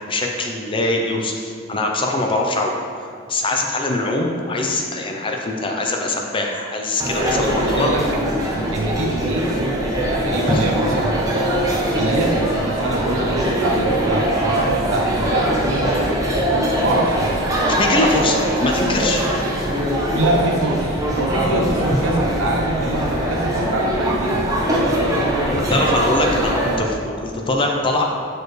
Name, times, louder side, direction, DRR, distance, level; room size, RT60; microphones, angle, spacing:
voice 1, 0.1-2.8 3.3-7.9 10.4-10.6 17.8-19.2 25.5-28.0, left 2 dB, 25° left, 1 dB, 0.5 m, -22 dB
sound 1, 7.0-26.8, right 1 dB, 15° right, 0.8 m, -21 dB
voice 2, 7.6-8.0 8.5-9.7 10.2-11.1 11.9-16.2 16.8-17.4 20.1-24.5, right 2 dB, 70° right, 0 dB, 0.7 m, -24 dB
sound 2, 20.7-26.2, left 1 dB, 75° left, 1.2 m, -38 dB
6.6 x 4.7 x 3.2 m, 2.2 s
head